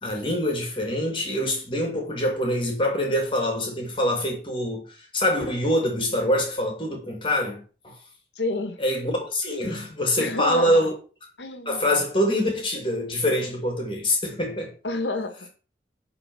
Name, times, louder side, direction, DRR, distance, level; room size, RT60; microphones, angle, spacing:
voice 1, 0.0-8.0 8.8-10.9 11.7-14.7, left 1 dB, 30° left, 2.9 m, -25 dB
voice 2, 8.4-8.8 10.2-10.9 11.4-11.9 14.8-15.5, left 3 dB, 85° left, 1.6 m, -29 dB
11.0 x 4.3 x 6.3 m
head